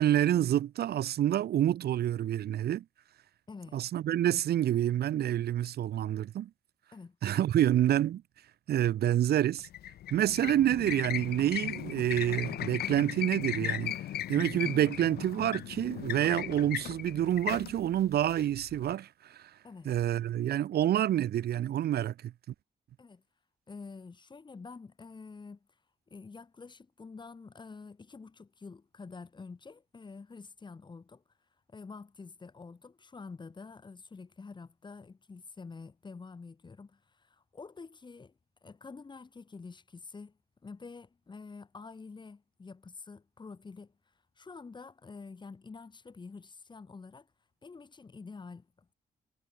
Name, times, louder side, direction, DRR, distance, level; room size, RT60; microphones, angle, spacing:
voice 1, 0.0-2.8 3.7-6.5 7.2-8.2 8.7-9.7 10.1-14.0 14.3-19.5 19.8-22.3, right 11 dB, 85° right, 0.8 m, -28 dB
voice 2, 3.5-3.8 6.9-7.2 19.6-19.9 23.0-23.2 23.7-25.7 26.1-31.2 31.7-38.3 38.6-43.9 44.4-47.3 47.6-48.9, left 4 dB, 30° left, 1.1 m, -48 dB
sound 1, 9.6-18.9, left 12 dB, 80° left, 0.5 m, -37 dB
cardioid pair, 105°, 16 cm